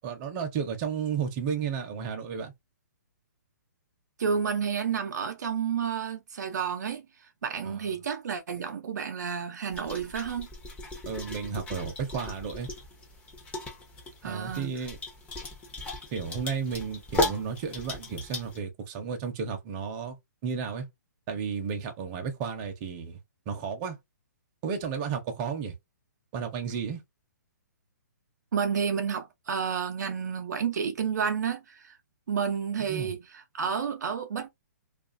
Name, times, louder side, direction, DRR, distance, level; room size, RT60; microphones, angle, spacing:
voice 1, 0.0-2.5 7.6-7.8 11.1-12.7 14.2-15.0 16.1-20.2 20.4-20.9 21.3-23.2 23.5-24.0 24.6-25.7 26.3-27.0 32.9-33.1, right 6 dB, 30° right, 0.7 m, -33 dB
voice 2, 4.2-10.5 14.2-14.7 28.5-32.0 32.3-34.5, right 7 dB, 70° right, 0.6 m, -30 dB
sound 1, 9.7-18.6, left 2 dB, 15° left, 0.7 m, -36 dB
2.4 x 2.4 x 2.5 m
hypercardioid pair, 145°, 10 cm